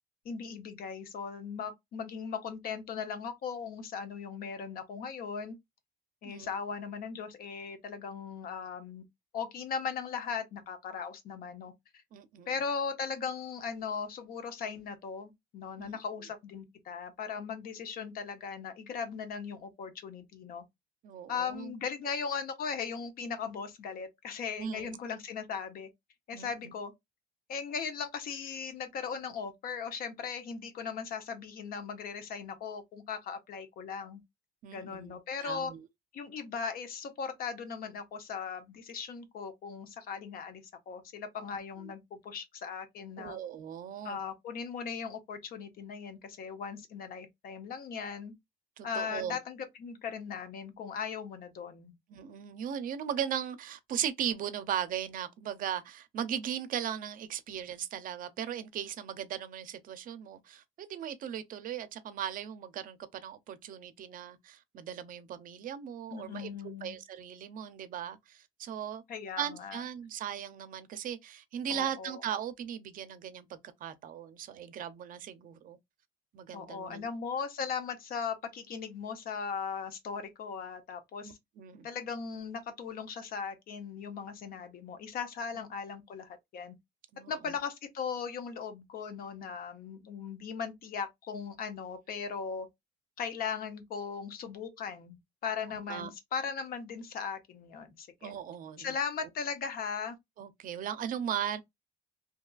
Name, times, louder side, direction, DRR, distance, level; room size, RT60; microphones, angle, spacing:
voice 1, 0.2-5.6 6.2-9.0 9.3-11.7 12.5-20.6 21.3-25.9 26.3-26.9 27.5-34.2 34.7-35.7 36.1-43.4 44.0-48.3 48.8-51.9 66.1-67.0 69.1-69.8 71.7-72.2 76.5-81.4 81.8-86.7 87.3-92.7 93.2-98.3 98.8-100.2, left 6 dB, 60° left, 0.7 m, -38 dB
voice 2, 12.1-12.5 15.8-16.0 21.0-21.7 24.6-25.0 26.3-26.7 34.6-35.8 41.8-41.9 43.2-44.2 48.8-49.4 52.1-69.0 69.4-75.8 76.3-77.1 81.2-81.9 85.5-85.6 87.1-87.6 95.9-96.1 98.2-98.9 100.4-101.6, right 9 dB, 55° right, 0.5 m, -38 dB
2.7 x 2.3 x 2.3 m
cardioid pair, 110°, 17 cm